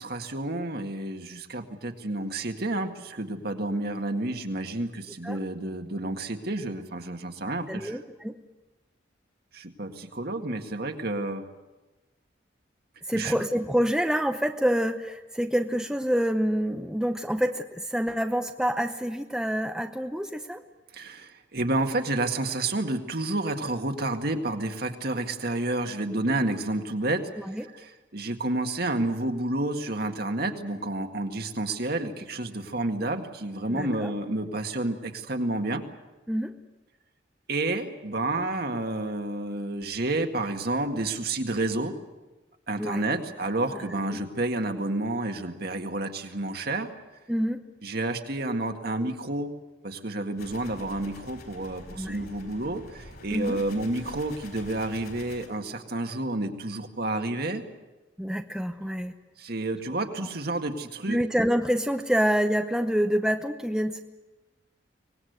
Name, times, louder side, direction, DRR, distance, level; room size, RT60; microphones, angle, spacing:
voice 1, 0.0-8.0 9.5-11.4 13.1-13.4 20.9-35.8 37.5-41.9 42.7-46.9 47.8-49.5 49.8-57.6 59.4-61.2, right 2 dB, 55° right, 5 dB, 1.9 m, -30 dB
voice 2, 7.7-8.4 13.1-20.6 27.4-27.7 33.7-34.1 36.3-36.5 42.8-43.1 43.7-44.2 47.3-47.6 52.0-52.2 53.3-53.6 58.2-59.1 60.2-60.3 61.1-64.0, equal, 5° right, 6 dB, 0.8 m, -27 dB
sound 1, 50.4-55.5, left 1 dB, 60° left, 4.7 m, -46 dB
24.5 x 19.0 x 8.1 m, 1.1 s
head